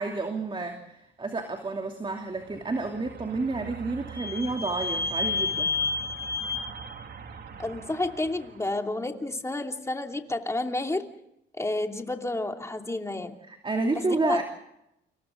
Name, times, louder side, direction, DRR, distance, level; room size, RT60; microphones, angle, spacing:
voice 1, 0.0-5.7 13.5-14.4, right 3 dB, 25° right, 3 dB, 3.0 m, -30 dB
Vehicle / Squeak, 2.7-8.3, left 3 dB, 55° right, 2.6 m, -32 dB
voice 2, 7.6-11.1 11.6-13.4 13.9-14.4, left 2 dB, 15° left, 4 dB, 2.8 m, -30 dB
29.5 x 27.0 x 3.9 m, 0.81 s
cardioid pair, 90°, 20 cm